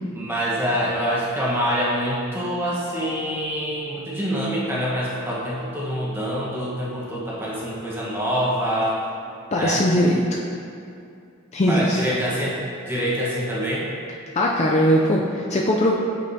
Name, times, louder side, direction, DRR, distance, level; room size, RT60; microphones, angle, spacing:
voice 1, 0.1-9.0 9.5-9.9 11.7-13.9, equal, 10° right, -6 dB, 1.2 m, -25 dB
voice 2, 9.5-10.2 11.5-12.0 14.3-15.9, equal, 30° left, -2 dB, 0.4 m, -20 dB
8.2 x 6.5 x 2.8 m, 2.5 s
head